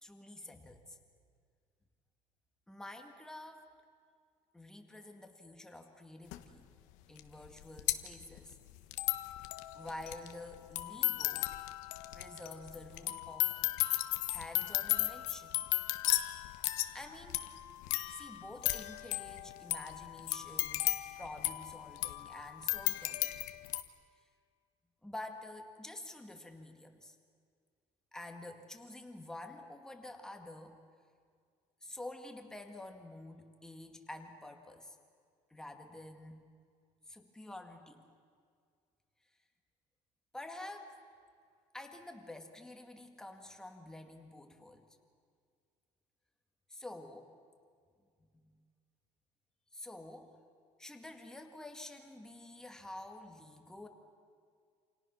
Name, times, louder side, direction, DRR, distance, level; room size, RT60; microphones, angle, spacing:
voice 1, 0.0-1.0 2.7-3.6 4.5-6.7 7.1-8.6 9.7-11.5 12.1-13.5 14.3-15.6 16.8-17.5 18.1-23.3 25.0-27.2 28.1-30.8 31.8-35.0 35.5-36.4 37.1-38.1 40.3-41.0 41.7-44.8 46.7-47.2 49.7-50.4 50.8-53.9, left 1 dB, 5° left, 4 dB, 1.9 m, -49 dB
sound 1, 6.3-6.4 7.2-7.3 7.4-23.8, left 17 dB, 80° left, 1.4 m, -35 dB
29.0 x 28.0 x 6.4 m, 2.1 s
cardioid pair, 175°, 13 cm